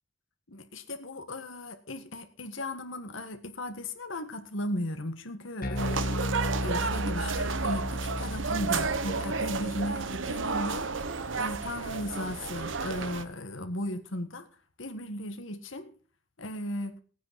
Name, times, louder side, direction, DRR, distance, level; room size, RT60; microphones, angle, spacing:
voice 1, 0.5-6.1 6.6-10.9 11.4-14.5 14.8-15.9 16.4-17.0, left 1 dB, 80° left, 1.7 m, -36 dB
Bass guitar, 5.6-12.1, left 1 dB, 45° left, 1.6 m, -35 dB
sound 1, 5.8-13.2, right 4 dB, 75° right, 1.0 m, -32 dB
18.5 x 9.2 x 4.2 m
head